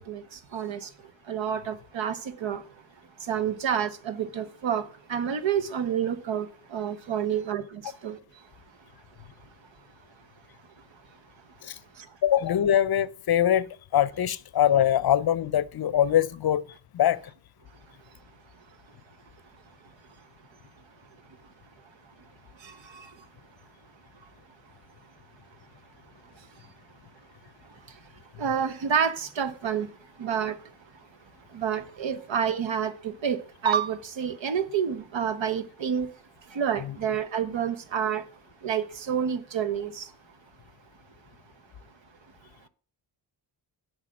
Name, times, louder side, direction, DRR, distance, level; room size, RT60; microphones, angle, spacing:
voice 1, 0.1-0.9 1.3-2.6 3.3-8.2 12.0-12.1 22.6-23.1 28.4-29.9 30.2-30.6 31.5-36.1 36.5-38.2 38.6-40.1, right 8 dB, 70° right, 1.1 m, -29 dB
voice 2, 12.2-16.6 16.9-17.2, left 10 dB, 55° left, 0.6 m, -23 dB
8.2 x 5.0 x 7.6 m
cardioid pair, 70°, 47 cm